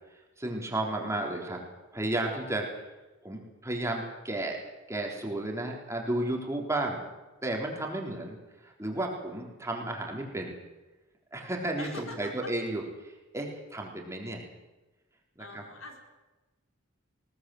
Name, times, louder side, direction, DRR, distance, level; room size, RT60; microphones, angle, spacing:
voice 1, 0.4-1.6 1.9-2.7 3.2-4.6 4.9-7.0 7.4-8.4 8.6-10.5 11.3-14.4 15.5-15.6, right 1 dB, 15° right, 0 dB, 3.8 m, -33 dB
voice 2, 11.8-12.5 15.4-16.0, left 2 dB, 75° left, 3 dB, 4.2 m, -43 dB
21.0 x 18.0 x 7.8 m, 1.1 s
head